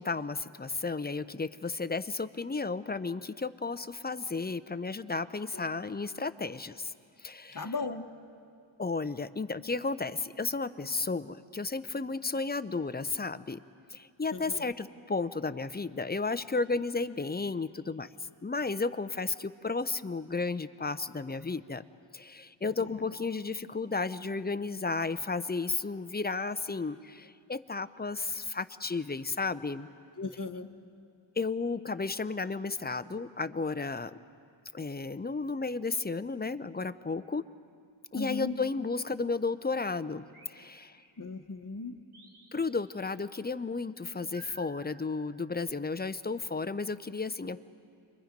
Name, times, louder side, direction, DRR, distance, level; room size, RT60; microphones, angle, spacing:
voice 1, 0.0-6.9 7.2-7.7 8.8-13.6 13.9-18.1 18.4-21.8 22.1-29.9 31.4-34.1 34.7-37.4 38.1-40.2 40.5-41.0 42.5-47.6, left 4 dB, 20° left, 13 dB, 0.5 m, -33 dB
voice 2, 7.5-8.1 14.3-14.7 22.8-23.0 30.2-30.7 38.1-38.5 41.2-42.0, left 3 dB, 40° left, 7 dB, 1.1 m, -37 dB
sound 1, 40.3-41.5 42.1-43.3 44.3-45.8, right 2 dB, 90° right, 3.7 m, -57 dB
30.0 x 23.5 x 5.2 m, 2.4 s
wide cardioid pair, 115°, 49 cm